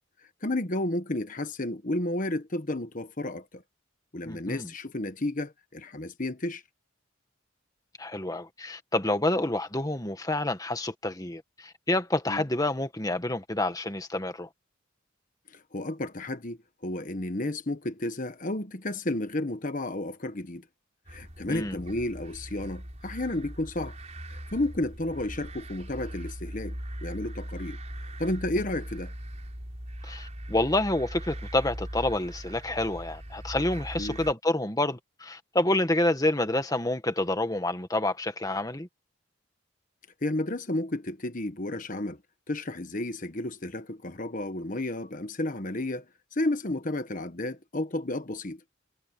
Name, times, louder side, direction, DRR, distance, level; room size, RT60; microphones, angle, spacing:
voice 1, 0.4-3.6 4.1-6.6 12.3-12.4 15.5-20.7 21.1-23.9 24.3-27.8 28.2-29.1 33.9-34.2 40.2-42.2 42.5-46.1 46.3-48.6, left 1 dB, 40° left, 1.2 m, -32 dB
voice 2, 4.3-4.7 8.0-14.5 21.5-21.8 30.0-38.9, left 1 dB, 20° left, 1.7 m, -28 dB
sound 1, 21.1-34.3, equal, 35° right, 5.5 m, -40 dB
head